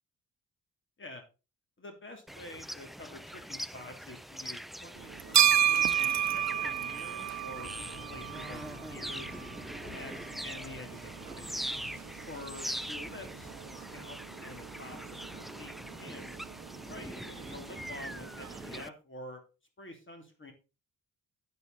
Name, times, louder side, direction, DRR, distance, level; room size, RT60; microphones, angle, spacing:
voice 1, 1.8-7.7 8.1-9.4 9.9-10.1 10.4-11.7 12.3-16.4 16.8-19.4 19.8-20.5, left 2 dB, 35° left, 5 dB, 2.8 m, -48 dB
sound 1, 2.3-18.9, equal, ahead, 0.5 m, -42 dB
sound 2, 5.0-18.8, right 10 dB, 50° right, 0.7 m, -33 dB
sound 3, 7.5-14.0, left 4 dB, 55° left, 4.1 m, -52 dB
8.6 x 7.9 x 4.1 m, 0.30 s
cardioid pair, 65°, 34 cm